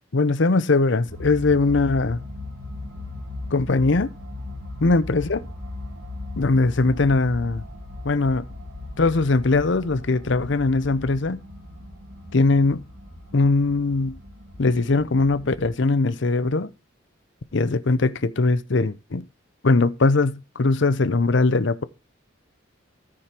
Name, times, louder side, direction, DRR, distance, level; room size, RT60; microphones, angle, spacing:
voice 1, 0.1-2.2 3.5-4.1 4.8-5.4 6.4-7.6 8.0-8.4 9.0-11.4 12.3-12.8 13.3-14.2 14.6-16.7 17.5-19.2 19.6-21.8, left 3 dB, 60° left, 0.7 m, -20 dB
sound 1, 1.1-15.7, left 2 dB, 60° right, 2.8 m, -38 dB
14.0 x 5.0 x 4.4 m
head